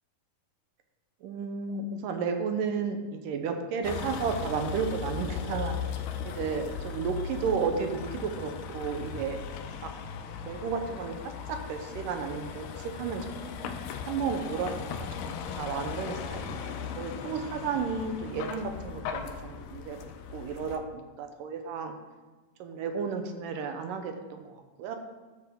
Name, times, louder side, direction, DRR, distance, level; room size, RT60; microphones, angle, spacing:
voice 1, 1.2-6.0 6.3-9.4 10.4-13.8 14.0-14.9 15.3-20.0 20.3-21.9 22.6-25.0, right 5 dB, 75° right, 5 dB, 2.3 m, -33 dB
Vehicle, 3.8-20.8, left 7 dB, 75° left, 2.2 m, -38 dB
13.0 x 8.1 x 3.7 m, 1.2 s
omnidirectional pair, 4.1 m